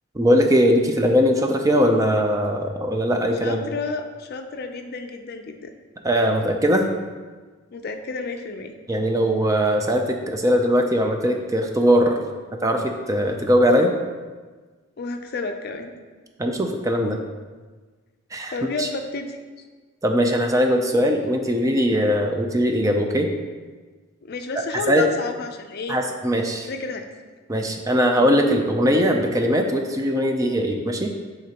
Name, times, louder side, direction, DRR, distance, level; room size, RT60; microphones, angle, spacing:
voice 1, 0.1-3.6 6.0-6.9 8.9-12.2 12.6-13.9 16.4-17.2 18.3-18.5 18.8-18.9 20.0-23.3 24.9-25.0 25.9-26.7 27.5-31.1, equal, 15° right, 3 dB, 0.4 m, -20 dB
voice 2, 3.4-5.7 7.7-8.7 15.0-15.9 18.5-19.4 24.2-26.0 26.7-27.0, left 3 dB, 50° left, 6 dB, 0.5 m, -31 dB
9.3 x 3.8 x 2.9 m, 1.4 s
head